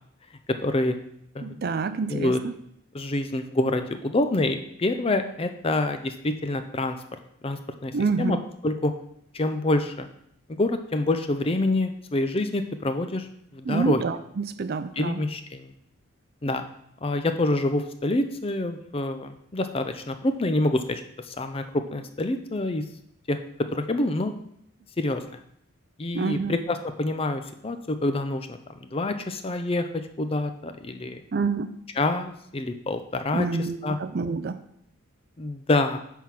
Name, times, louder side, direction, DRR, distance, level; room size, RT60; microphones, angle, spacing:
voice 1, 0.6-1.0 1.3-1.6 2.1-2.4 2.9-7.0 7.4-8.4 8.6-8.9 9.3-10.1 10.5-13.3 13.5-14.0 15.0-15.7 16.4-16.6 17.0-21.0 21.3-22.8 23.3-23.4 23.7-24.3 25.0-25.4 26.0-28.5 28.8-29.9 30.2-31.2 32.0-33.5 33.8-34.0 35.4-36.0, left 2 dB, 25° left, 8 dB, 0.5 m, -26 dB
voice 2, 1.4-2.5 7.9-8.4 13.6-15.2 26.1-26.6 31.3-31.8 33.3-34.6, right 4 dB, 50° right, 11 dB, 0.4 m, -27 dB
9.2 x 3.7 x 5.8 m, 0.72 s
head